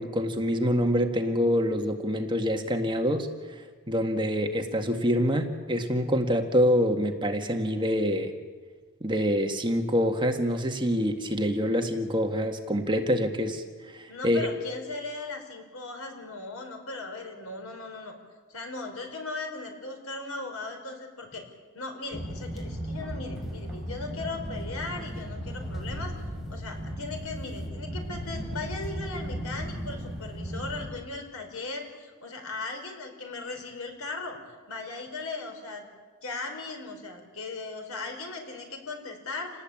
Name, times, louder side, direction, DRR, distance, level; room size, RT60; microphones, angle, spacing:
voice 1, 0.0-3.3 3.9-8.3 9.0-14.4, equal, 20° right, 4 dB, 1.9 m, -26 dB
voice 2, 14.1-18.1 18.5-21.5 21.7-26.1 26.5-35.9 36.2-39.6, left 3 dB, 65° left, 4 dB, 5.3 m, -38 dB
sound 1, 22.1-30.9, equal, ahead, 5.6 m, -36 dB
28.5 x 19.5 x 8.8 m, 1.5 s
head